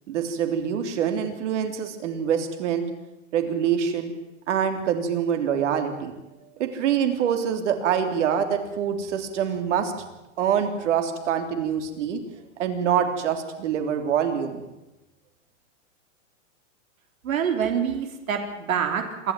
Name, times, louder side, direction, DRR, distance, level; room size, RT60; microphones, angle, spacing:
voice 1, 0.1-2.9 3.3-4.1 4.5-6.1 6.6-9.9 10.4-12.2 12.6-14.6, right 8 dB, 60° right, 6 dB, 3.5 m, -25 dB
voice 2, 17.2-19.3, right 7 dB, 85° right, 5 dB, 3.5 m, -26 dB
26.5 x 12.5 x 9.2 m, 1.0 s
hypercardioid pair, 155°, 40 cm